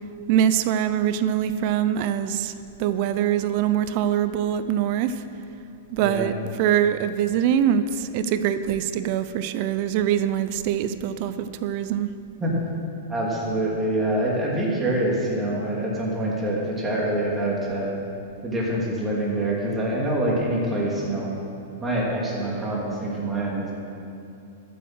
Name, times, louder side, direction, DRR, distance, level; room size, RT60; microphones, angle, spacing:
voice 1, 0.3-2.5 2.8-5.2 5.9-6.3 6.6-12.1, right 10 dB, 45° right, 12 dB, 0.5 m, -23 dB
voice 2, 6.0-6.3 12.4-12.5 13.1-17.9 18.4-21.3 21.8-23.7, right 1 dB, 15° right, -4 dB, 2.8 m, -25 dB
14.0 x 7.8 x 6.2 m, 2.7 s
hypercardioid pair, 140°, 0 cm